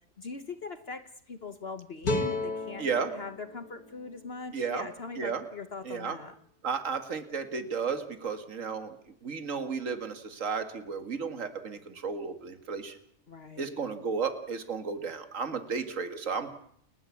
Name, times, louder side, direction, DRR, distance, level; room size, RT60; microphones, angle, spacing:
voice 1, 0.2-2.8 3.1-6.3 13.3-13.8, left 4 dB, 45° left, 10 dB, 1.3 m, -41 dB
sound 1, 2.0-5.2, left 2 dB, 90° left, 3.0 m, -35 dB
voice 2, 2.8-3.1 4.5-4.9 5.2-5.4 5.8-6.2 6.6-8.9 9.2-13.0 13.6-16.5, right 5 dB, 60° right, 9 dB, 2.2 m, -33 dB
29.5 x 11.0 x 8.5 m, 0.65 s
omnidirectional pair, 1.5 m